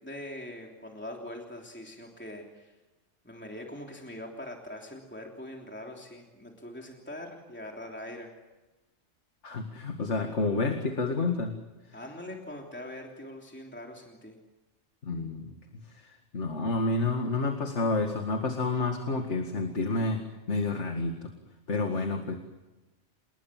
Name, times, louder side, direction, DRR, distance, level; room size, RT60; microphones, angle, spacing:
voice 1, 0.0-2.8 3.2-8.3 11.9-14.4, left 1 dB, 10° left, 1 dB, 3.2 m, -42 dB
voice 2, 9.4-11.5 15.0-20.2 20.5-21.3 21.7-22.4, left 3 dB, 70° left, 4 dB, 2.3 m, -29 dB
29.5 x 20.0 x 7.6 m, 1.1 s
omnidirectional pair, 1.2 m